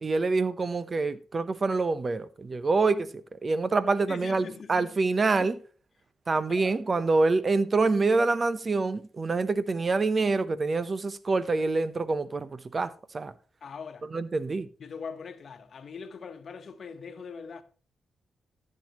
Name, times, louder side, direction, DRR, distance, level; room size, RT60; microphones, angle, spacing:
voice 1, 0.0-5.6 6.3-13.3 14.1-14.7, right 3 dB, 40° right, 0.9 m, -26 dB
voice 2, 4.1-5.0 5.4-5.5 6.5-6.8 13.6-14.1 14.8-17.6, left 5 dB, 55° left, 1.1 m, -42 dB
14.5 x 7.6 x 3.1 m
hypercardioid pair, 45°, 0 cm